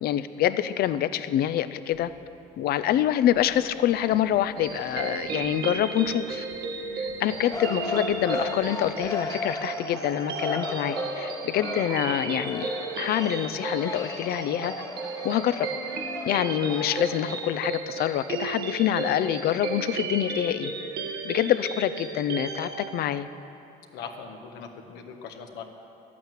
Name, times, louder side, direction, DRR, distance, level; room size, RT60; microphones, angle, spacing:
voice 1, 0.0-2.1 2.6-6.4 7.0-12.7 13.0-14.7 15.2-15.7 16.3-20.7 21.2-23.3, left 11 dB, 65° left, 13 dB, 0.6 m, -26 dB
sound 1, 1.9-9.4, left 5 dB, 50° left, 1.6 m, -48 dB
sound 2, 4.6-22.9, right 4 dB, 75° right, 1.6 m, -34 dB
sound 3, 7.4-17.6, left 3 dB, 20° left, 1.1 m, -36 dB
voice 2, 23.9-25.6, left 6 dB, 85° left, 3 dB, 1.4 m, -40 dB
13.0 x 8.5 x 9.1 m, 2.9 s
cardioid pair, 110°, 17 cm